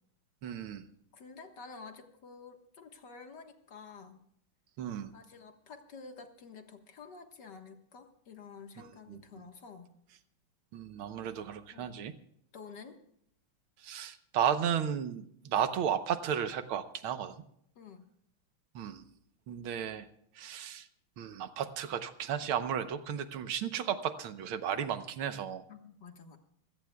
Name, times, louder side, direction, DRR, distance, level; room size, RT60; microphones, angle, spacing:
voice 1, 0.4-0.9 4.8-5.1 8.8-9.2 10.7-12.2 13.8-17.3 18.8-19.0 19.5-20.1 20.4-20.9 21.2-25.6, right 8 dB, 75° right, 10 dB, 1.8 m, -34 dB
voice 2, 1.1-4.2 5.1-10.0 11.7-11.9 12.5-13.0 17.8-18.1 25.7-26.4, left 5 dB, 55° left, 5 dB, 2.0 m, -50 dB
26.5 x 16.0 x 2.3 m, 0.69 s
omnidirectional pair, 2.4 m